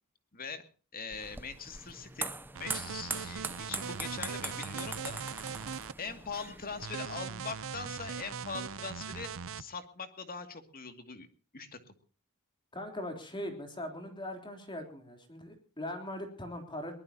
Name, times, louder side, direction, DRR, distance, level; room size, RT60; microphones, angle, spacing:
voice 1, 0.3-0.6 0.9-2.3 2.6-5.7 6.0-9.3 9.6-11.3 11.5-11.9, left 5 dB, 40° left, 8 dB, 2.4 m, -42 dB
sound 1, 1.1-6.8, right 3 dB, 10° right, 0.7 m, -41 dB
sound 2, 2.5-5.9 6.8-9.6, right 6 dB, 65° right, 0.8 m, -40 dB
voice 2, 12.7-17.0, left 1 dB, 20° left, 4 dB, 3.5 m, -40 dB
23.0 x 19.5 x 2.9 m, 0.38 s
head